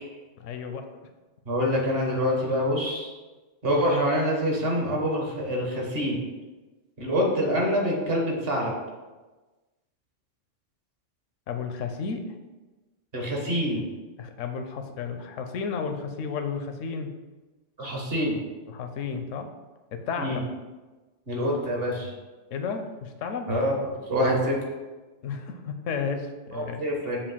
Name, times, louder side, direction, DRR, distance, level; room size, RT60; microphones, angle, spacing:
voice 1, 0.4-0.9 11.5-12.2 14.2-17.1 18.7-19.5 19.9-20.4 22.5-23.5 25.2-26.8, left 5 dB, 85° left, 6 dB, 1.0 m, -32 dB
voice 2, 1.4-3.1 3.6-6.2 7.0-8.7 13.1-13.8 17.8-18.4 20.2-20.4 21.3-22.1 23.5-24.6 26.5-27.2, equal, 50° right, -1 dB, 1.5 m, -26 dB
6.9 x 2.6 x 5.5 m, 1.2 s
omnidirectional pair, 1.3 m